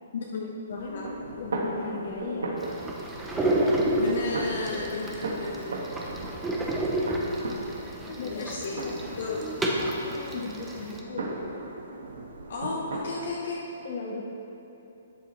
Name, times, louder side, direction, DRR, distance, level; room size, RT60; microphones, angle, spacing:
voice 1, 0.1-1.1 4.0-5.8 8.2-8.8 9.2-9.4 12.5-13.6, left 3 dB, 55° left, -3 dB, 1.0 m, -33 dB
voice 2, 0.7-2.6 4.0-4.1 4.6-4.9 6.3-6.7 8.1-11.5 13.1-13.2 13.8-14.2, left 3 dB, 40° left, -1 dB, 1.3 m, -38 dB
sound 1, 0.7-13.4, right 2 dB, 80° right, 1.3 m, -37 dB
sound 2, 2.6-11.0, right 1 dB, 5° right, 0.6 m, -30 dB
12.0 x 9.2 x 3.2 m, 2.9 s
hypercardioid pair, 180°, 0 cm